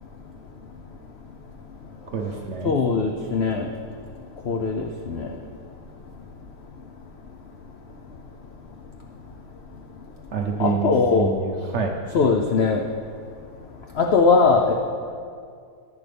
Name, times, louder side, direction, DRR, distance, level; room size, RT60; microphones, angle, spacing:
voice 1, 2.1-2.8 10.3-10.9 11.2-11.9, right 6 dB, 60° right, 2 dB, 0.7 m, -27 dB
voice 2, 2.6-3.7 4.5-5.3 10.6-11.3 12.1-12.8 14.0-14.7, left 4 dB, 70° left, 2 dB, 0.6 m, -20 dB
11.0 x 9.8 x 3.3 m, 2.3 s
omnidirectional pair, 1.7 m